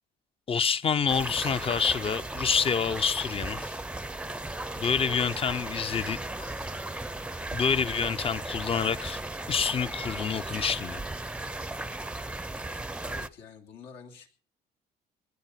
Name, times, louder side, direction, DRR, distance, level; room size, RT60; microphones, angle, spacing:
voice 1, 0.5-3.8 4.8-6.2 7.5-9.2 9.5-11.0, left 6 dB, 35° left, 0.7 m, -27 dB
sound 1, 1.1-13.3, right 2 dB, 5° right, 0.6 m, -36 dB
sound 2, 6.4-7.7, left 8 dB, 60° left, 3.1 m, -56 dB
voice 2, 13.0-14.3, left 6 dB, 85° left, 2.9 m, -48 dB
20.0 x 10.5 x 5.8 m
cardioid pair, 110°, 17 cm